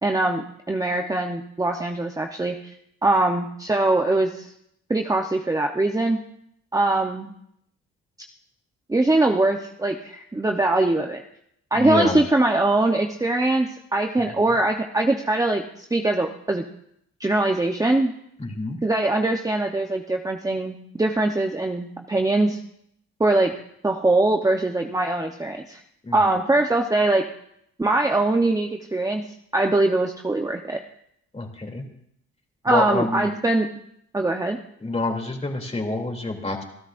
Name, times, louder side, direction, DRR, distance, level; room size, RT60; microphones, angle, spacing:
voice 1, 0.0-2.7 3.0-4.5 4.9-6.2 6.7-7.3 8.9-11.2 11.7-16.6 17.2-18.1 18.8-22.6 23.2-23.5 23.8-25.8 26.1-27.2 27.8-29.2 29.5-30.8 32.6-33.7 34.1-34.6, right 2 dB, 10° right, 2 dB, 0.9 m, -22 dB
voice 2, 11.7-12.2 14.3-14.5 18.4-18.8 26.0-26.3 31.3-31.9 32.7-33.3 34.8-36.6, left 2 dB, 20° left, 2 dB, 2.9 m, -27 dB
26.5 x 13.0 x 2.6 m, 0.72 s
cardioid pair, 90°, 30 cm